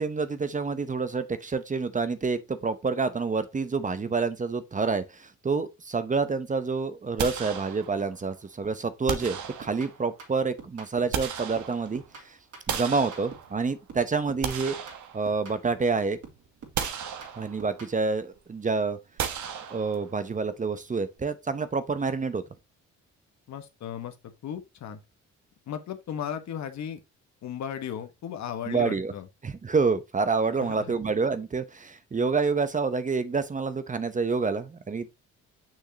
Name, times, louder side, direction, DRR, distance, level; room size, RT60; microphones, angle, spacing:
voice 1, 0.0-12.4 12.7-14.7 15.1-16.2 17.4-19.0 19.7-22.4 28.7-29.1 29.4-35.1, right 4 dB, 25° right, 0.8 m, -28 dB
sound 1, 7.2-8.2 9.1-10.1 10.8-12.1 12.7-13.8 14.2-15.7 16.1-16.2 16.7-17.8 19.2-20.3, right 8 dB, 70° right, 1.3 m, -35 dB
sound 2, 9.2-11.2 11.5-13.6 13.9-15.9 16.2-18.0, right 5 dB, 55° right, 3.1 m, -48 dB
voice 2, 23.5-24.1 24.4-25.0 25.7-27.0 27.4-29.3 30.6-30.8, left 9 dB, 65° left, 1.4 m, -35 dB
6.5 x 6.3 x 2.9 m
cardioid pair, 90°, 30 cm